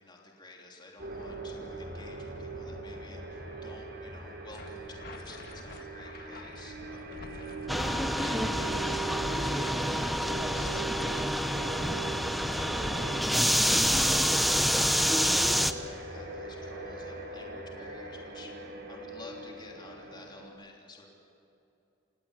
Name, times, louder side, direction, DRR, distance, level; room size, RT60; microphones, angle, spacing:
voice 1, 0.0-21.1, left 2 dB, 25° left, -1 dB, 3.3 m, -51 dB
sound 1, 1.0-20.5, right 3 dB, 60° right, 4.9 m, -41 dB
sound 2, 4.5-15.1, left 3 dB, 50° left, 1.7 m, -48 dB
sound 3, 7.7-15.7, equal, ahead, 0.8 m, -27 dB
29.0 x 18.5 x 8.3 m, 2.8 s
head